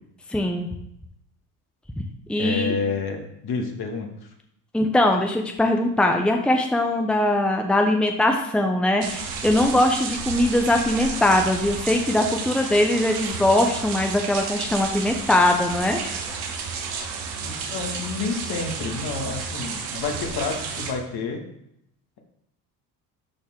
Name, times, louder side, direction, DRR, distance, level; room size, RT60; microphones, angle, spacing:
voice 1, 0.3-0.7 2.3-2.7 4.7-16.0, left 1 dB, ahead, 3 dB, 1.1 m, -21 dB
voice 2, 2.4-4.3 17.4-21.4, left 4 dB, 50° left, 2 dB, 2.1 m, -29 dB
sound 1, 9.0-20.9, right 5 dB, 75° right, 1.4 m, -32 dB
12.5 x 4.2 x 3.8 m, 0.77 s
hypercardioid pair, 65°, 47 cm